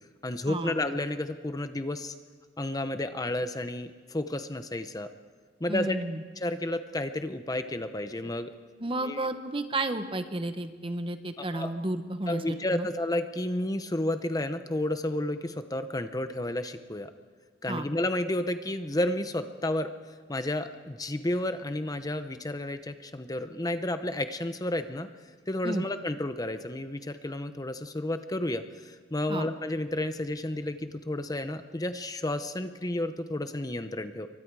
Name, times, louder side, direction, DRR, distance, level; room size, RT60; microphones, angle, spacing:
voice 1, 0.2-2.1 2.6-5.1 5.6-6.0 6.4-8.5 9.0-9.3 11.5-11.7 12.3-17.1 17.6-19.9 20.3-25.1 25.5-34.3, left 1 dB, 20° left, 9 dB, 0.8 m, -31 dB
voice 2, 5.7-6.2 8.8-12.9 17.7-17.9 25.6-25.8 29.3-29.5, right 2 dB, 30° right, 8 dB, 1.2 m, -32 dB
29.0 x 24.0 x 4.8 m, 1.5 s
head